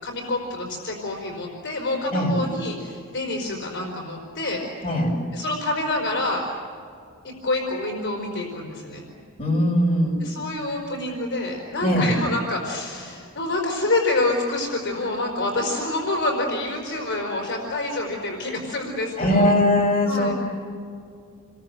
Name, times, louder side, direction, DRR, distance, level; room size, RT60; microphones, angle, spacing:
voice 1, 0.0-4.6 5.3-6.4 7.2-9.0 10.2-19.5 20.0-20.3, left 2 dB, 55° left, 0 dB, 4.7 m, -27 dB
voice 2, 9.4-10.2 11.8-12.1 19.2-20.3, left 1 dB, 25° left, -2 dB, 6.6 m, -20 dB
29.0 x 22.5 x 7.9 m, 2.4 s
head